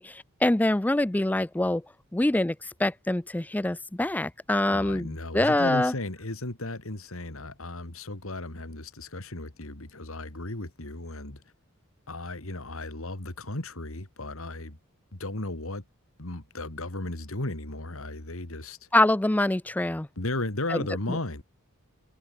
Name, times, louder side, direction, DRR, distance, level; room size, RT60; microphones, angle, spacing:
voice 1, 0.0-1.8 2.1-5.9 18.9-20.1 20.7-20.8, left 1 dB, 5° left, 0.4 m, -25 dB
voice 2, 4.7-11.4 12.1-14.8 15.1-15.8 16.2-18.9 20.2-21.4, left 2 dB, 70° left, 2.7 m, -35 dB
head